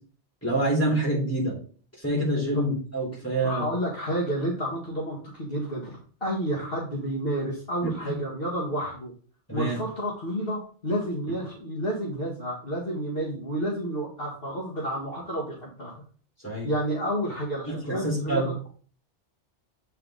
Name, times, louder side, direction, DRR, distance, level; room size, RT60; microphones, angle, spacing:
voice 1, 0.4-1.6 2.0-3.7 7.8-7.9 9.5-9.8 16.4-16.7 17.7-18.5, right 1 dB, 10° left, -6 dB, 3.7 m, -26 dB
voice 2, 3.4-9.1 9.5-16.0 16.6-18.5, right 1 dB, 55° left, -5 dB, 1.8 m, -30 dB
7.7 x 4.5 x 3.8 m, 0.42 s
omnidirectional pair, 1.2 m